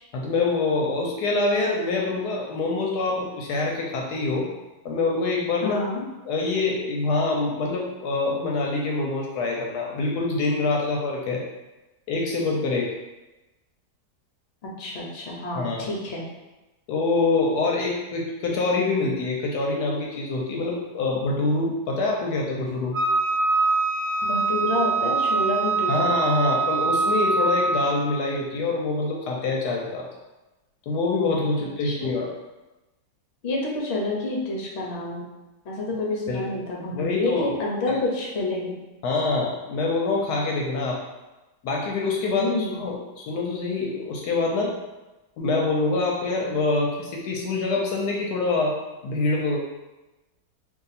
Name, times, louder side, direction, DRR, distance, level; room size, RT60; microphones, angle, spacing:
voice 1, 0.1-4.5 4.8-5.8 6.3-11.4 12.1-12.9 15.5-15.9 16.9-23.0 25.9-30.1 30.9-32.3 36.3-36.4 36.9-37.6 37.9-38.0 39.0-41.0 41.6-42.5 42.8-44.7 45.4-48.8 49.0-49.6, left 3 dB, 75° left, -1 dB, 1.1 m, -25 dB
voice 2, 5.6-6.0 14.8-16.2 24.2-26.1 31.8-32.1 33.4-35.2 35.6-38.7 42.3-42.9, left 2 dB, 55° left, -2 dB, 0.8 m, -28 dB
Wind instrument woodwind instrument, 22.9-28.1, right 3 dB, 75° right, 0.5 m, -23 dB
2.7 x 2.6 x 4.0 m, 1.1 s
omnidirectional pair, 1.9 m